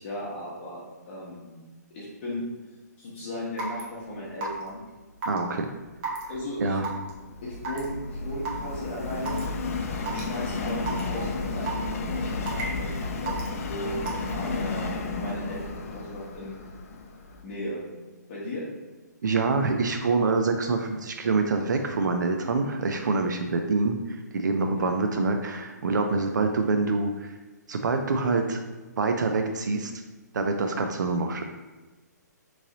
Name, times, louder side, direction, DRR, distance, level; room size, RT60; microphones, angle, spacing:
voice 1, 0.0-1.5 1.9-2.4 3.0-4.8 6.3-7.0 7.4-9.4 9.9-14.0 14.3-16.6 17.4-17.8 18.3-18.6 23.5-23.7 24.7-24.9, left 1 dB, 35° left, -7 dB, 0.9 m, -36 dB
Raindrop / Water tap faucet / Drip, 3.6-3.8 4.4-4.7 5.2-5.4 6.0-6.2 6.8-7.1 7.6-7.8 8.4-8.5 9.2-9.4 10.1-10.2 10.9-11.0 11.7-11.9 12.5-12.8 13.3-13.5 14.1-14.3, right 4 dB, 30° right, 0.7 m, -31 dB
voice 2, 5.3-5.7 6.2-6.3 6.6-6.9 19.2-24.0 24.3-27.3 27.7-28.6 29.0-29.9 30.3-31.4, right 3 dB, 80° right, 5 dB, 0.4 m, -26 dB
Subway metro underground, 6.1-17.4, left 3 dB, 50° left, 0.4 m, -33 dB
3.1 x 2.6 x 3.8 m, 1.2 s
hypercardioid pair, 155°, 10 cm